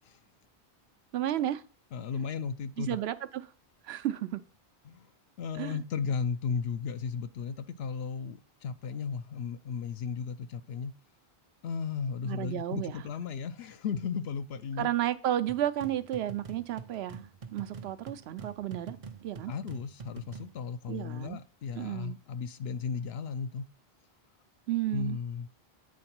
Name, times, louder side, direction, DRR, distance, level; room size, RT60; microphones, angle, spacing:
voice 1, 1.1-1.6 2.8-3.5 3.8-4.4 5.6-5.8 12.3-13.0 14.8-19.0 19.2-19.5 20.9-21.4 21.7-22.2 24.7-25.2, right 12 dB, 90° right, 0.8 m, -32 dB
voice 2, 1.9-3.0 4.8-5.1 5.4-10.9 11.6-14.9 19.5-23.7 24.9-25.5, left 6 dB, 75° left, 0.8 m, -35 dB
sound 1, 15.5-20.6, right 5 dB, 45° right, 0.5 m, -46 dB
8.5 x 3.9 x 4.4 m
omnidirectional pair, 1.0 m